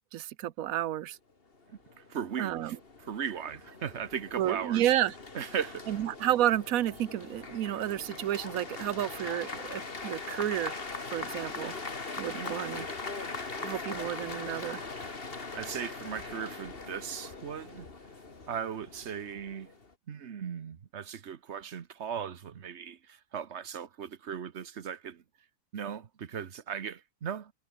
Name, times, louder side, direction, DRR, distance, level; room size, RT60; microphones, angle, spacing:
voice 1, 0.1-1.2 2.4-2.8 4.4-5.1 5.9-10.8 11.1-11.8 12.2-12.9 13.6-14.8, right 12 dB, 85° right, 1.2 m, -31 dB
sound 1, 1.7-19.9, left 3 dB, 45° left, 2.4 m, -41 dB
voice 2, 1.7-4.9 5.3-6.0 12.3-12.6 15.5-17.9 18.5-19.7 20.1-25.2 25.7-27.5, right 8 dB, 55° right, 1.3 m, -38 dB
omnidirectional pair, 1.4 m